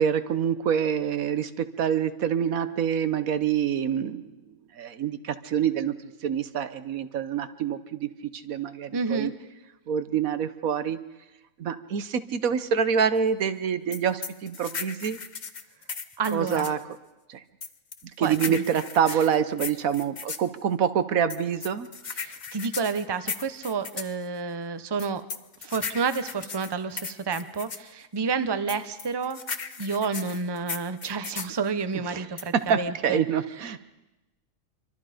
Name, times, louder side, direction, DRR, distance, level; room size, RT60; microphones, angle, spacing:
voice 1, 0.0-4.3 4.8-5.9 6.2-9.3 9.9-11.0 11.6-15.2 16.3-16.8 17.3-17.4 18.2-21.9 32.1-32.3 32.7-33.8, right 8 dB, 80° right, 11 dB, 1.4 m, -26 dB
voice 2, 8.9-9.3 16.2-16.7 18.2-18.6 19.1-19.2 22.1-25.2 25.6-33.2, right 5 dB, 20° right, 11 dB, 0.8 m, -30 dB
sound 1, 13.9-16.8 17.6-20.5 21.3-24.1 25.0-27.9 28.7-31.6 32.4-32.7, left 5 dB, 35° left, 0.9 m, -36 dB
27.0 x 24.0 x 5.1 m, 1.0 s
omnidirectional pair, 1.4 m